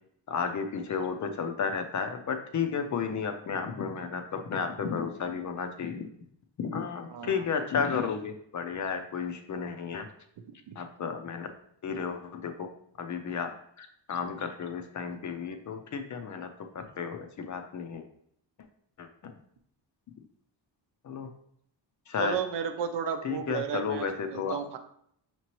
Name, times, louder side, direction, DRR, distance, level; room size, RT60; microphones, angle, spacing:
voice 1, 0.3-6.1 6.6-10.1 10.8-11.5 11.8-12.7 13.0-13.5 13.8-16.5 16.7-18.0 19.0-19.1 21.0-21.3 22.1-22.4 23.2-24.6, left 6 dB, 40° left, 6 dB, 0.5 m, -33 dB
voice 2, 7.1-7.4 10.7-10.8 22.2-24.8, right 7 dB, 65° right, 7 dB, 0.6 m, -33 dB
5.8 x 2.9 x 3.0 m, 0.70 s
cardioid pair, 125°, 44 cm